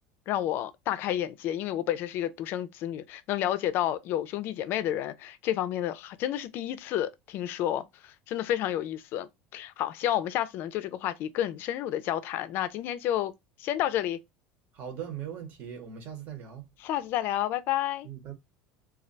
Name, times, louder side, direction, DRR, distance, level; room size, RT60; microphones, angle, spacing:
voice 1, 0.3-13.3 13.6-14.2 16.8-18.1, left 12 dB, 50° left, 0.4 m, -30 dB
voice 2, 14.7-16.7 18.0-18.3, right 9 dB, 45° right, 0.9 m, -39 dB
2.3 x 2.1 x 3.9 m
supercardioid pair, 135°, 4 cm